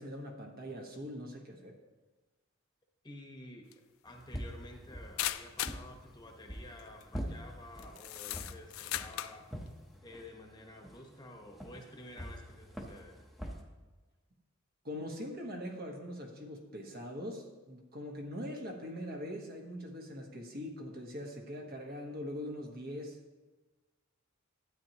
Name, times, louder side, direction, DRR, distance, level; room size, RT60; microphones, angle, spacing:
voice 1, 0.0-1.7 14.8-23.2, equal, 50° right, 1 dB, 1.3 m, -42 dB
voice 2, 3.0-3.7 4.0-9.5 10.0-13.2, left 1 dB, 20° left, 1 dB, 1.1 m, -51 dB
sound 1, 3.7-3.8 5.2-5.8 6.8-7.0 7.8-9.4, left 13 dB, 80° left, 0.4 m, -37 dB
sound 2, 4.1-13.6, equal, ahead, 0.9 m, -46 dB
12.5 x 8.8 x 3.0 m, 1.2 s
head